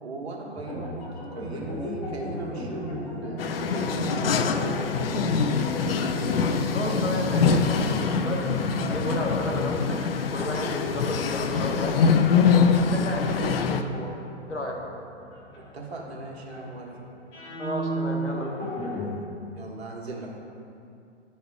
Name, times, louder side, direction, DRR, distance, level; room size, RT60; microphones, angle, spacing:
voice 1, 0.0-6.0 15.7-16.9 19.5-20.4, right 2 dB, 65° right, -1 dB, 1.5 m, -38 dB
sound 1, 0.6-13.4 14.4-19.2, equal, 25° left, 1.4 m, -36 dB
sound 2, 3.4-13.8, left 5 dB, 55° left, 0.5 m, -24 dB
voice 2, 6.7-10.0 10.3-12.1 12.7-14.1 14.5-14.8 17.6-18.6, left 1 dB, 90° left, 0 dB, 1.3 m, -32 dB
10.5 x 4.2 x 3.6 m, 2.6 s
figure-of-eight pair, 120°, 34 cm